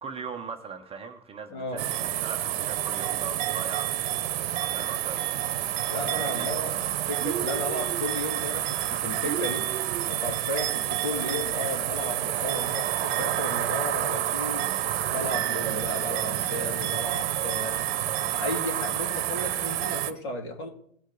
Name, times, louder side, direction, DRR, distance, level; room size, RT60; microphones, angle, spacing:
voice 1, 0.0-1.9 2.2-4.2 4.5-5.6 6.1-6.7, right 5 dB, 15° right, 3 dB, 0.8 m, -40 dB
voice 2, 1.5-1.9 5.8-6.8 7.1-9.7 10.1-14.7 15.1-17.8 18.2-20.7, left 2 dB, 55° left, 1 dB, 3.5 m, -34 dB
sound 1, 1.8-20.1, right 13 dB, 50° right, 1.0 m, -29 dB
sound 2, 7.2-8.1 9.2-10.1, right 10 dB, 75° right, 0.6 m, -35 dB
19.0 x 6.3 x 3.8 m, 0.65 s
figure-of-eight pair, 105°, 40 cm